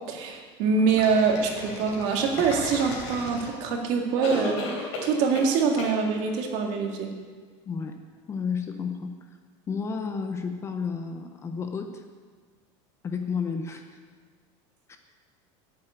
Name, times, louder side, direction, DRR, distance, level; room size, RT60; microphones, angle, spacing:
voice 1, 0.0-7.1, right 5 dB, 55° right, 3 dB, 2.0 m, -25 dB
sound 1, 0.9-3.8 4.2-5.5 5.8-5.9, left 2 dB, 75° left, 3.5 m, -35 dB
voice 2, 7.6-7.9 8.3-9.2 9.7-12.0 13.0-14.0 14.9-15.0, left 5 dB, 20° left, 6 dB, 0.7 m, -31 dB
9.5 x 7.6 x 8.9 m, 1.5 s
cardioid pair, 165°, 14 cm